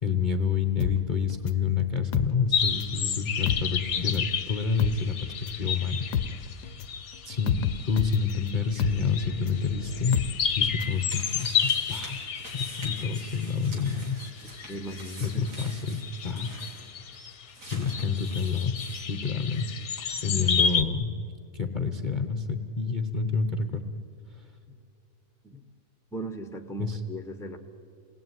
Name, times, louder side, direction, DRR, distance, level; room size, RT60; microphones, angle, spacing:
voice 1, 0.0-6.0 7.2-10.3 10.6-12.2 12.5-14.2 15.2-16.5 17.7-19.7 20.2-21.1 21.5-23.8 26.8-27.0, left 5 dB, 35° left, 6 dB, 1.0 m, -28 dB
sound 1, 0.8-3.0 3.3-11.0 11.3-11.4, left 9 dB, 90° left, 1.4 m, -31 dB
sound 2, 2.5-20.8, left 7 dB, 50° left, 1.2 m, -32 dB
sound 3, 10.1-19.7 20.0-20.1, right 1 dB, 80° right, 4.2 m, -46 dB
voice 2, 14.7-15.7 24.7-24.8 25.4-25.7 26.1-27.6, right 1 dB, ahead, 6 dB, 1.1 m, -38 dB
27.5 x 19.5 x 9.4 m, 2.7 s
omnidirectional pair, 1.7 m